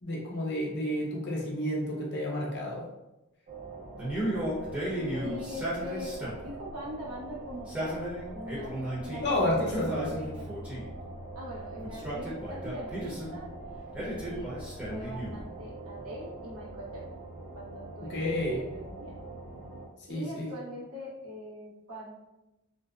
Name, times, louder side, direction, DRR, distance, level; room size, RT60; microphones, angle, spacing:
voice 1, 0.0-2.8 9.2-10.1 18.1-18.6 20.1-20.5, left 1 dB, 50° left, -3 dB, 0.6 m, -30 dB
sound 1, 3.5-19.9, right 2 dB, 40° right, 0.5 m, -44 dB
Male speech man speaking, 4.0-6.5 7.5-9.3 9.7-11.0 11.8-13.3 13.9-15.5, right 1 dB, 5° right, 0.7 m, -34 dB
voice 2, 4.9-6.1 6.4-8.1 8.3-8.8 9.0-10.5 11.4-13.5 14.0-14.5 14.9-17.0 17.5-19.2 20.1-22.3, equal, 80° right, -6 dB, 0.9 m, -42 dB
2.5 x 2.1 x 2.4 m, 0.99 s
head